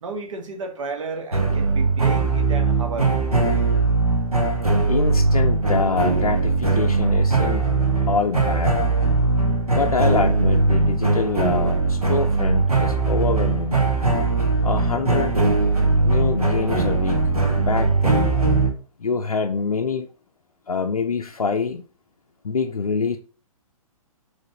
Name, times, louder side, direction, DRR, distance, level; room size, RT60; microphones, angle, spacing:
voice 1, 0.0-3.1, right 3 dB, 60° right, 0.9 m, -32 dB
sound 1, 1.3-18.7, right 3 dB, 85° right, 1.0 m, -20 dB
voice 2, 4.9-7.7 8.0-8.8 9.7-13.8 14.6-15.4 16.0-17.2 17.6-18.3 19.0-20.1 20.7-21.8 22.4-23.2, left 5 dB, 80° left, 0.5 m, -25 dB
5.1 x 3.1 x 2.8 m
figure-of-eight pair, 115°, 19 cm